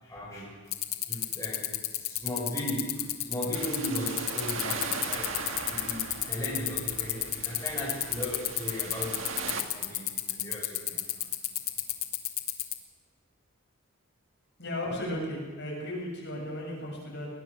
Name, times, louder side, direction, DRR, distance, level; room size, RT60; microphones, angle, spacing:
voice 1, 0.0-0.5 1.1-5.3 5.6-11.3, equal, 15° left, -5 dB, 6.2 m, -37 dB
sound 1, 0.7-12.7, left 15 dB, 75° left, 1.7 m, -29 dB
sound 2, 3.5-9.6, right 5 dB, 65° right, 1.8 m, -38 dB
voice 2, 14.6-17.3, left 1 dB, 55° left, -2 dB, 7.4 m, -35 dB
22.5 x 19.0 x 6.7 m, 1.5 s
head